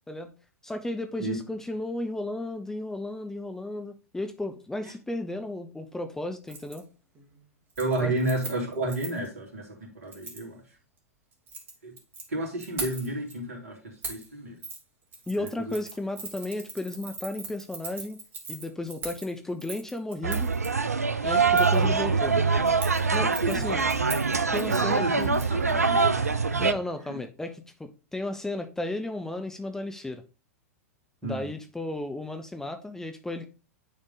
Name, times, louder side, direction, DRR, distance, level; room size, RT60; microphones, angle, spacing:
voice 1, 0.6-6.9 8.0-8.1 15.3-18.2 18.5-20.5 21.2-22.4 23.1-23.8 24.5-25.3 26.6-30.2 31.2-33.5, left 2 dB, 5° left, 7 dB, 0.6 m, -34 dB
Keys jangling, 6.5-6.8 7.1-7.4 7.7-9.3 10.1-10.4 11.3-12.2 12.6-13.3 14.0-14.3 14.6-14.8 15.1-20.7 21.5-21.8 22.7-25.7 26.0-26.1, right 4 dB, 25° right, 2.0 m, -40 dB
voice 2, 7.8-10.6 11.8-11.9 12.3-14.6 15.4-15.8 21.7-22.4 23.2-23.7 24.7-26.6 27.1-27.2 31.2-31.5, right 1 dB, 65° right, 0 dB, 2.8 m, -32 dB
sound 1, 20.2-26.7, right 4 dB, 80° right, 0.5 m, -24 dB
9.8 x 3.6 x 3.9 m, 0.31 s
figure-of-eight pair, 95°, 8 cm